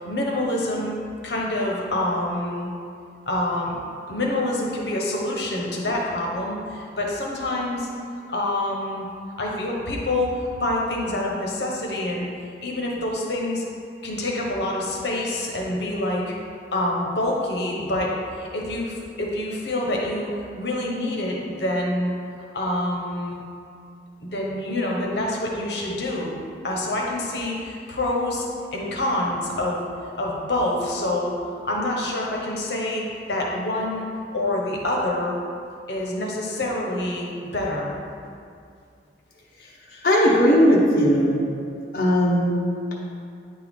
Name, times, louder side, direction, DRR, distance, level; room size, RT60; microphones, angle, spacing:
voice 1, 0.1-1.0 1.2-2.7 3.3-3.7 4.1-7.9 8.3-9.0 9.4-12.3 12.6-13.6 14.0-16.3 16.7-20.3 20.6-22.1 22.5-23.4 24.2-26.3 26.6-28.5 28.7-29.8 30.1-34.1 34.3-35.3 35.9-37.9 39.9-40.1, left 1 dB, 70° left, -2 dB, 1.1 m, -26 dB
voice 2, 40.0-41.4 41.9-42.5, equal, 50° left, -5 dB, 0.9 m, -17 dB
9.1 x 4.5 x 3.6 m, 2.3 s
head